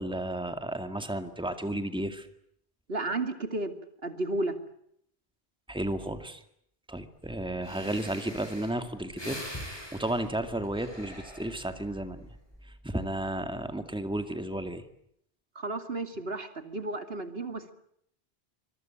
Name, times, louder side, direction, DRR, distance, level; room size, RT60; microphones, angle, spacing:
voice 1, 0.0-2.3 5.7-6.4 6.9-9.4 9.6-12.3 12.6-14.8, right 1 dB, 5° right, 7 dB, 2.2 m, -33 dB
voice 2, 2.9-3.7 4.0-4.6 15.5-17.7, right 2 dB, 70° right, 8 dB, 2.8 m, -33 dB
Breathing, 7.3-7.4 7.6-11.9 12.4-12.7, equal, 25° left, 7.2 m, -43 dB
25.5 x 23.0 x 8.8 m, 0.72 s
omnidirectional pair, 1.1 m